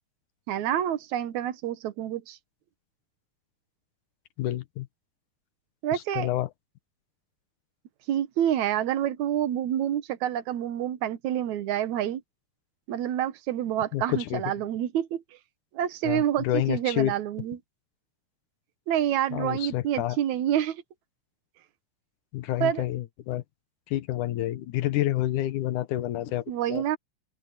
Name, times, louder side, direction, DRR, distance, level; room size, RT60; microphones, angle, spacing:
voice 1, 0.5-2.4 5.8-6.3 8.1-12.2 12.9-15.2 15.7-17.6 18.9-20.8 22.6-22.9 26.5-27.0, right 11 dB, 70° right, 2.5 m, -28 dB
voice 2, 4.4-4.9 5.9-6.5 13.9-14.4 16.0-17.1 19.3-20.2 22.3-23.4 23.9-26.8, left 14 dB, 85° left, 2.5 m, -29 dB
open air
omnidirectional pair, 3.5 m